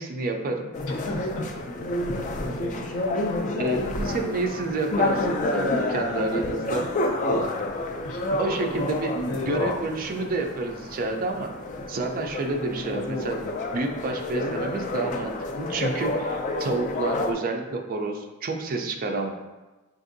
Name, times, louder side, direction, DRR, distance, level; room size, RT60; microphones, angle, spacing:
voice 1, 0.0-0.7 2.8-2.9 3.6-6.9 8.4-9.1 9.4-11.6 11.9-13.4 13.7-19.3, right 2 dB, 40° right, 3 dB, 0.4 m, -29 dB
sound 1, 0.7-17.3, left 2 dB, 35° left, 0.3 m, -29 dB
voice 2, 0.8-1.6 2.0-2.9 8.0-8.4 9.3-9.7, left 2 dB, 70° left, 0 dB, 0.7 m, -34 dB
5.7 x 2.6 x 2.6 m, 1.1 s
head